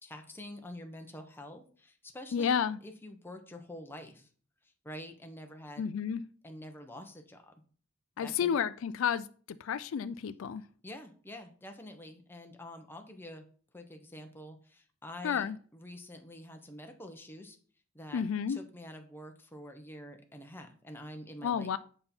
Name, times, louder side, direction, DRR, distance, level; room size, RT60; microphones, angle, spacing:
voice 1, 0.0-4.3 4.6-5.9 6.4-7.5 8.2-8.5 10.8-13.5 13.7-17.6 17.9-18.2 18.5-21.7, left 1 dB, 10° left, 0.9 m, -47 dB
voice 2, 2.3-2.8 5.8-6.2 8.2-9.2 9.6-10.6 15.2-15.6 18.1-18.6 21.4-21.8, left 7 dB, 70° left, 0.3 m, -31 dB
7.7 x 5.5 x 4.3 m
head